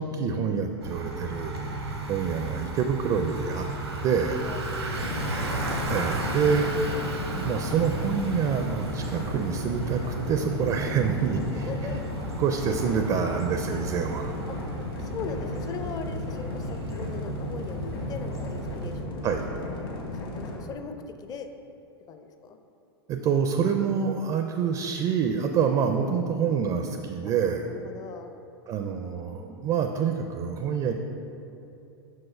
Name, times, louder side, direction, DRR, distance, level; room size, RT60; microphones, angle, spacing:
voice 1, 0.0-1.5 2.1-3.7 4.0-4.4 5.9-6.7 7.3-11.7 12.4-14.4 19.2-19.4 23.1-27.7 28.7-30.9, right 6 dB, 30° right, 5 dB, 0.4 m, -26 dB
Bicycle, 0.8-19.0, right 2 dB, 90° right, 1.0 m, -34 dB
voice 2, 4.4-5.1 11.6-12.0 14.5-14.6 15.0-21.5 22.1-22.6 27.2-27.3 27.7-28.3, left 5 dB, 30° left, 6 dB, 0.5 m, -40 dB
sound 1, 5.0-20.6, left 2 dB, 60° left, 1.5 m, -36 dB
6.0 x 4.7 x 4.4 m, 2.8 s
hypercardioid pair, 95°, 13 cm